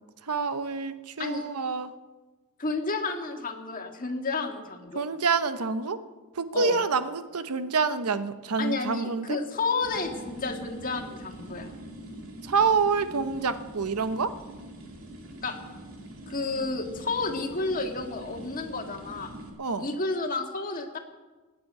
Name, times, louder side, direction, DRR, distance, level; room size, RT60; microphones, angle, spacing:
voice 1, 0.3-1.9 4.9-6.0 6.3-9.4 12.4-14.4 19.6-19.9, right 4 dB, 90° right, 11 dB, 0.9 m, -27 dB
voice 2, 2.6-5.0 6.5-6.8 8.6-11.7 15.4-15.6 16.3-19.3 19.8-21.0, left 3 dB, 40° left, 4 dB, 1.8 m, -31 dB
sound 1, 9.8-19.5, right 1 dB, 70° right, 3.0 m, -44 dB
16.0 x 9.4 x 9.3 m, 1.3 s
head